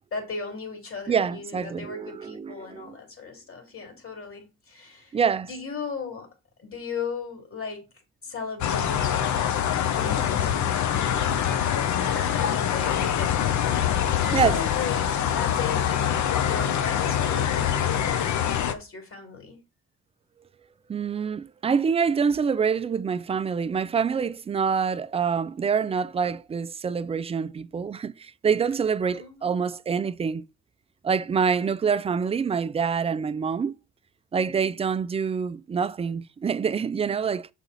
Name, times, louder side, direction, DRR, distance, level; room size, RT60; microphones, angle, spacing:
voice 1, 0.1-6.3 6.6-7.8 8.2-9.2 9.9-16.1 16.4-19.6 22.0-22.4 29.1-29.7 34.4-34.7, left 5 dB, 45° left, 2.9 m, -37 dB
voice 2, 1.1-3.0 5.1-5.5 14.3-14.6 20.9-30.4 31.0-33.7 34.3-37.5, right 6 dB, 20° right, 0.3 m, -26 dB
sound 1, 8.6-18.7, left 9 dB, 70° left, 0.8 m, -24 dB
6.9 x 4.1 x 4.0 m
cardioid pair, 90°, 30 cm